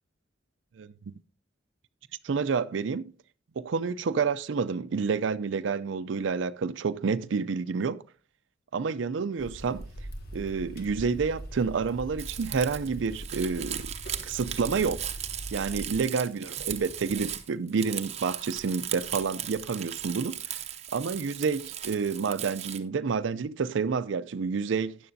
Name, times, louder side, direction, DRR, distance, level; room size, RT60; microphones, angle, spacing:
voice 1, 2.2-3.1 3.6-8.0 8.7-9.9 10.3-13.9 14.2-15.1 15.5-20.6 20.9-25.0, right 5 dB, 85° right, 0.4 m, -29 dB
sound 1, 9.4-16.0, right 1 dB, 55° left, 1.7 m, -41 dB
Crumpling crinkling, 12.2-22.8, right 10 dB, 35° right, 0.8 m, -37 dB
12.5 x 10.0 x 2.6 m
head